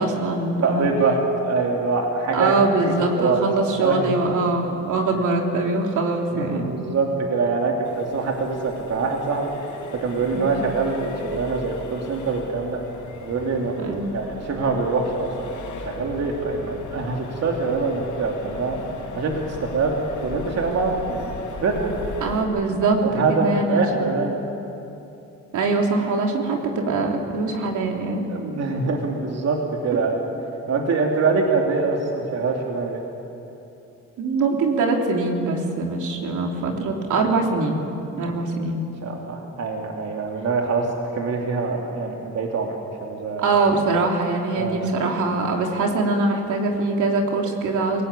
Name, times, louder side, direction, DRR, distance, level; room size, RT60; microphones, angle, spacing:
voice 1, 0.0-0.9 2.3-6.7 10.3-10.6 13.8-14.1 22.2-23.8 25.5-28.3 34.2-37.8 38.2-38.8 43.4-48.0, right 3 dB, 75° right, 1 dB, 3.5 m, -23 dB
voice 2, 0.6-2.5 2.9-3.4 3.8-4.0 5.0-5.1 6.3-9.5 10.0-12.8 13.2-13.7 14.1-15.5 15.8-18.8 19.1-20.0 20.2-21.3 21.6-22.0 23.0-24.4 28.3-30.2 30.7-33.0 38.1-38.3 39.0-43.5 44.6-44.9, right 4 dB, 60° right, 0 dB, 3.0 m, -24 dB
Accelerating revving vroom, 7.8-22.4, left 3 dB, 80° left, 6.0 m, -38 dB
28.5 x 18.0 x 8.5 m, 2.8 s
cardioid pair, 90°, 30 cm